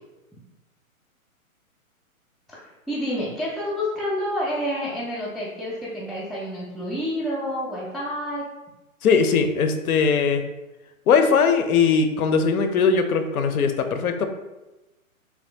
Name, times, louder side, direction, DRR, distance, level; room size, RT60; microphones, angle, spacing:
voice 1, 2.9-8.4, equal, ahead, -6 dB, 0.3 m, -28 dB
voice 2, 9.0-10.4 11.1-14.3, left 5 dB, 90° left, 7 dB, 0.6 m, -20 dB
3.3 x 2.4 x 2.6 m, 1.0 s
hypercardioid pair, 180°, 42 cm